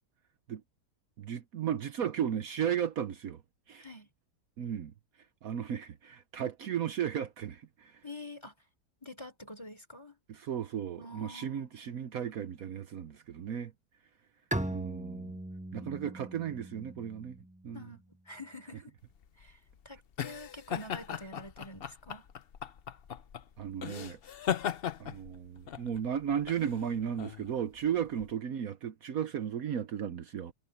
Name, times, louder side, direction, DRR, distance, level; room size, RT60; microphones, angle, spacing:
voice 1, 1.2-3.4 3.7-3.9 4.6-4.9 5.4-8.0 10.3-13.7 14.7-15.3 15.7-17.4 17.6-17.9 23.6-24.2 25.0-30.5, right 8 dB, 65° right, 1.2 m, -35 dB
voice 2, 3.8-4.1 8.0-8.5 9.0-10.2 11.0-11.7 17.7-18.8 19.4-19.6 19.9-22.3 28.1-28.3, left 1 dB, 15° left, 3.6 m, -47 dB
Bowed string instrument, 14.5-18.0, right 1 dB, 5° right, 1.1 m, -39 dB
sound 1, 19.1-28.3, left 9 dB, 55° left, 0.7 m, -38 dB
omnidirectional pair, 1.7 m